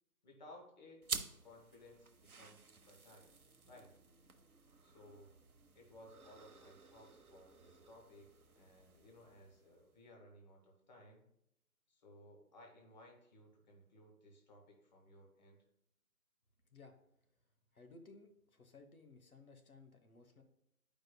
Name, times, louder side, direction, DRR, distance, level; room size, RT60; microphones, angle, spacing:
voice 1, 0.2-1.1 1.4-3.3 3.7-4.0 4.8-5.3 5.7-11.2 11.9-15.6, left 1 dB, 30° left, 0 dB, 1.1 m, -60 dB
sound 1, 1.0-10.0, right 5 dB, 70° right, 0.8 m, -50 dB
voice 2, 17.7-20.4, left 3 dB, 65° left, 5 dB, 1.0 m, -59 dB
9.0 x 5.1 x 2.2 m, 0.79 s
figure-of-eight pair, 150°, 46 cm